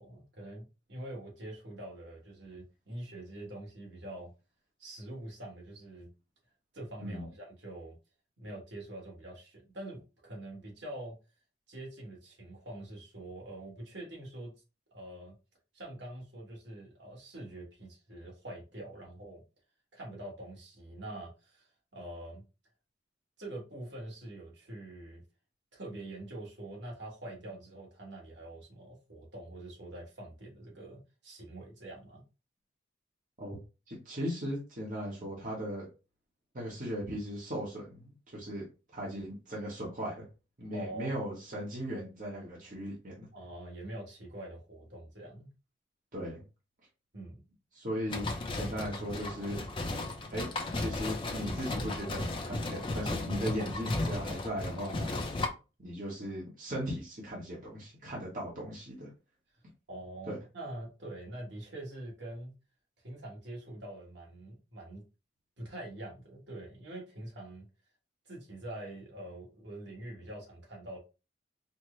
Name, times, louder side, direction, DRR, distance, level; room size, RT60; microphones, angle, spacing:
voice 1, 0.0-4.3 4.8-6.1 6.7-7.9 8.4-11.2 11.7-14.5 14.9-15.3 15.7-19.4 19.9-22.4 23.4-25.2 25.7-32.2 40.6-41.1 43.3-45.5 47.1-47.4 59.9-62.5 63.0-65.0 65.6-67.7 68.2-71.0, right 1 dB, 80° right, 1.4 m, -45 dB
voice 2, 33.9-35.9 36.5-38.7 38.9-40.3 40.6-43.3 46.1-46.4 47.7-48.2 48.5-49.6 50.3-50.5 50.7-55.2 55.8-59.1 60.3-60.4, equal, 45° right, 1.1 m, -38 dB
sound 1, 48.1-55.5, left 2 dB, 30° left, 0.5 m, -35 dB
4.3 x 2.1 x 3.1 m
head